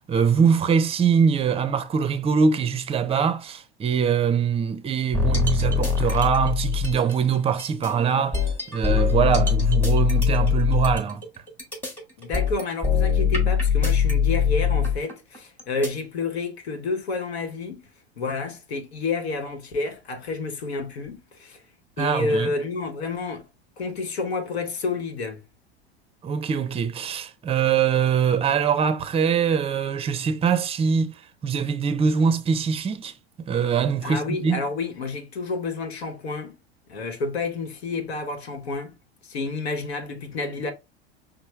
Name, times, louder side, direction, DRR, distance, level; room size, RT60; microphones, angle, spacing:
voice 1, 0.1-8.4 8.7-11.2 22.0-22.5 26.2-31.1 31.4-33.1 33.4-34.6, right 6 dB, 20° right, 0.5 m, -23 dB
sound 1, 5.1-7.1 7.6-15.9, left 6 dB, 5° left, 1.2 m, -22 dB
voice 2, 12.2-17.9 18.2-21.6 22.0-23.5 23.8-25.4 34.0-36.6 36.9-38.9 39.2-40.7, left 3 dB, 75° left, 1.0 m, -29 dB
5.4 x 2.1 x 3.1 m
hypercardioid pair, 90°, 32 cm